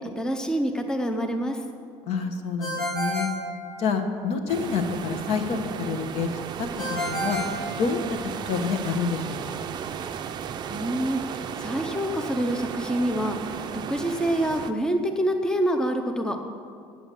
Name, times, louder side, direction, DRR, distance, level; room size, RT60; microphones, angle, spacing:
voice 1, 0.0-1.6 10.7-13.5 13.7-16.4, right 1 dB, 5° left, 5 dB, 0.6 m, -26 dB
voice 2, 2.1-3.3 3.8-6.3 6.6-7.4 7.8-8.0 8.5-9.6, left 5 dB, 65° left, 7 dB, 1.0 m, -28 dB
Ringtone, 2.6-4.3 6.8-8.5, equal, 40° left, 2.8 m, -31 dB
sound 1, 4.5-14.7, right 8 dB, 40° right, 0.5 m, -35 dB
7.9 x 7.6 x 8.2 m, 2.2 s
cardioid pair, 150°, 11 cm